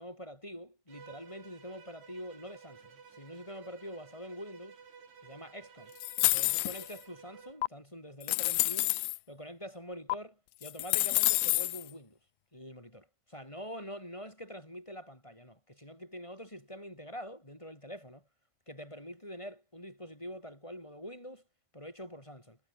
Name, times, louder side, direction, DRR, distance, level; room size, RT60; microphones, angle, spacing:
voice 1, 0.0-4.8 5.2-5.9 6.3-9.0 9.3-12.2 12.5-18.2 18.7-21.4 21.7-22.6, equal, 5° left, 5.7 m, -45 dB
Bowed string instrument, 0.9-7.6, right 6 dB, 50° right, 4.6 m, -54 dB
sound 1, 6.0-7.0 7.6-7.7 8.2-9.2 10.1-10.2 10.6-11.8, left 23 dB, 80° left, 2.1 m, -28 dB
omnidirectional pair, 4.4 m